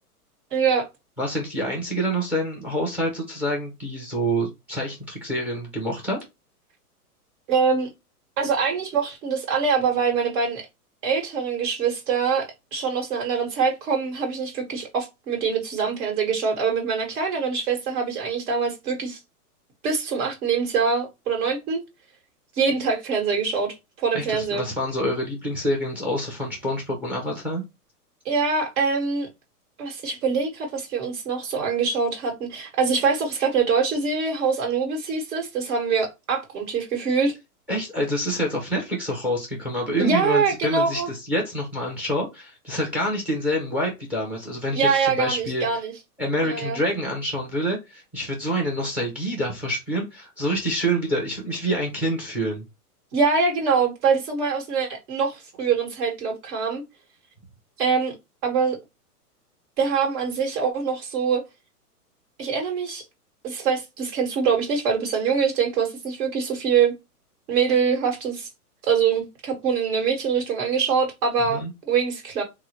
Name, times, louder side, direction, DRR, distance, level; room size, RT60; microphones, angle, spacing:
voice 1, 0.5-0.8 7.5-7.9 8.4-10.7 11.0-19.2 19.8-21.8 22.6-24.7 28.2-29.3 29.8-37.3 40.0-41.1 44.7-45.9 46.4-46.8 53.1-56.8 57.8-58.1 58.4-58.8 59.8-61.4 62.4-63.0 63.4-66.9 67.5-68.5 68.9-72.4, right 5 dB, 65° right, 1.3 m, -24 dB
voice 2, 1.2-6.2 24.1-27.6 37.7-45.7 46.2-52.6 71.5-71.7, equal, 5° right, 0.4 m, -27 dB
3.6 x 2.1 x 2.9 m
hypercardioid pair, 130°, 46 cm